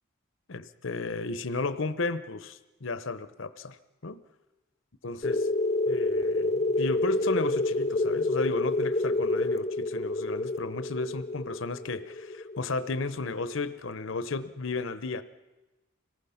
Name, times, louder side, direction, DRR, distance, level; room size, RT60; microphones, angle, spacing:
voice 1, 0.5-3.8 4.0-4.2 5.0-5.5 5.9-15.2, left 3 dB, 70° left, 13 dB, 0.9 m, -34 dB
sound 1, 5.2-13.6, left 2 dB, 30° left, 0.6 m, -28 dB
25.5 x 18.5 x 5.8 m, 1.1 s
head